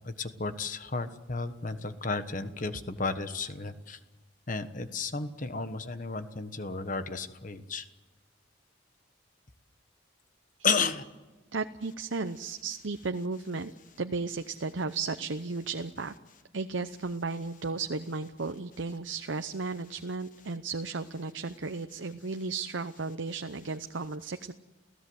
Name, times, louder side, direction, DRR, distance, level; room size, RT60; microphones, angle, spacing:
voice 1, 0.0-4.0 4.5-7.8 10.6-11.0, left 4 dB, 45° left, 10 dB, 1.3 m, -33 dB
voice 2, 11.5-13.7 14.0-16.1 16.5-24.5, right 4 dB, 75° right, 8 dB, 0.8 m, -34 dB
29.5 x 16.5 x 8.0 m, 1.2 s
head